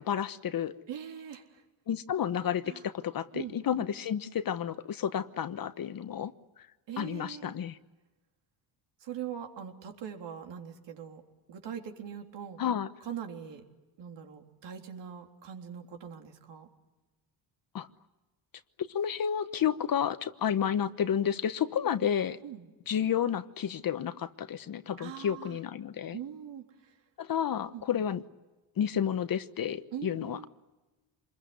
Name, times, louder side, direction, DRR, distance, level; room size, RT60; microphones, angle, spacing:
voice 1, 0.0-0.7 1.9-6.3 7.0-7.8 12.6-12.9 17.7-17.9 18.8-22.4 22.9-26.2 27.2-28.2 28.8-30.5, left 9 dB, 45° left, 1.2 m, -31 dB
voice 2, 0.9-1.6 2.6-2.8 3.3-3.6 6.9-7.6 9.0-11.2 11.5-12.6 13.0-13.6 14.0-16.7 21.8-22.1 22.4-22.7 25.0-25.6 26.1-26.9 27.7-27.8 29.9-30.5, right 9 dB, 65° right, 3.7 m, -42 dB
26.5 x 21.5 x 9.6 m
cardioid pair, 100°, 47 cm